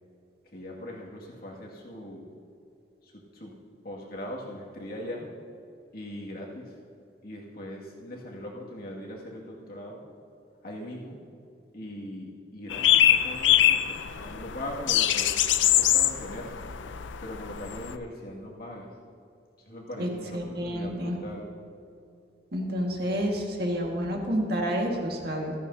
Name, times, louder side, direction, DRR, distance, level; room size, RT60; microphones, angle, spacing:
voice 1, 0.4-2.3 3.0-3.5 3.8-5.3 5.9-6.8 7.2-10.1 10.6-11.2 11.7-15.4 15.7-16.6 17.2-18.9 19.6-21.6, left 1 dB, 55° left, -3 dB, 2.2 m, -40 dB
sound 1, 12.7-18.0, left 11 dB, 85° left, 0.5 m, -23 dB
voice 2, 20.0-21.2 22.5-25.5, equal, 55° right, 0 dB, 1.7 m, -29 dB
15.0 x 14.0 x 2.8 m, 2.6 s
head